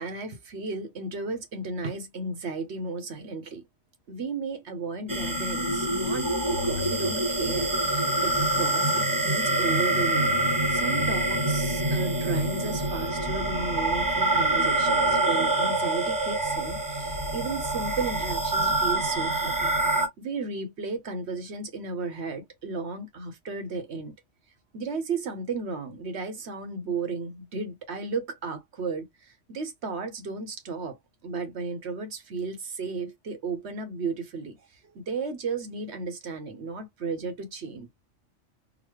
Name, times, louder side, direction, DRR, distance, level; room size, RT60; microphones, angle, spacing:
voice 1, 0.0-3.6 4.1-19.7 20.2-24.1 24.7-31.0 31.2-34.6 34.9-37.9, right 4 dB, 65° right, 1.2 m, -34 dB
sound 1, 5.1-20.1, right 2 dB, 20° right, 0.9 m, -26 dB
4.0 x 2.1 x 3.1 m
omnidirectional pair, 1.3 m